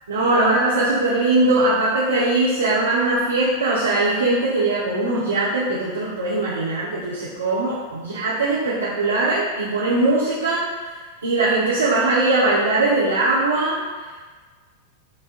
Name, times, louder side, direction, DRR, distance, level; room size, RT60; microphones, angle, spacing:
voice 1, 0.1-10.7 11.2-13.8, right 2 dB, 70° right, -8 dB, 0.6 m, -20 dB
5.3 x 2.4 x 2.4 m, 1.4 s
figure-of-eight pair, 90°, 0 cm